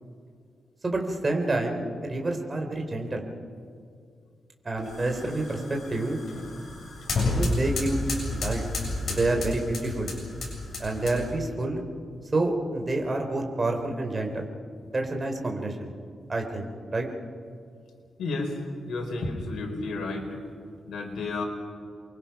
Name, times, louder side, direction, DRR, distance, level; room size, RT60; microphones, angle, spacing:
voice 1, 0.8-3.2 4.6-6.2 7.3-8.6 9.1-10.1 10.8-11.8 12.3-14.5 14.8-15.9 16.3-17.1, right 2 dB, 25° right, 2 dB, 3.5 m, -28 dB
sound 1, 4.8-11.5, left 2 dB, 55° left, 7.7 m, -31 dB
voice 2, 18.2-18.6 18.9-20.4 20.9-21.4, left 3 dB, 90° left, 2 dB, 4.7 m, -31 dB
28.5 x 23.5 x 5.8 m, 2.3 s
wide cardioid pair, 135°, 0 cm